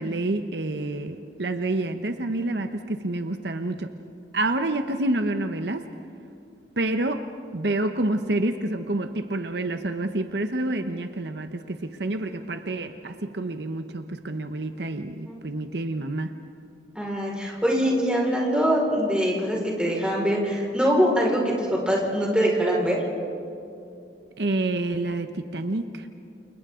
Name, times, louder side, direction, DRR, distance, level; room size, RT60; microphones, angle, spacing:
voice 1, 0.0-3.9 4.3-5.8 6.8-16.3 24.4-26.1, right 2 dB, 70° right, 7 dB, 1.0 m, -28 dB
voice 2, 16.9-23.0, equal, 5° right, -3 dB, 5.0 m, -23 dB
29.5 x 29.0 x 3.8 m, 2.6 s
head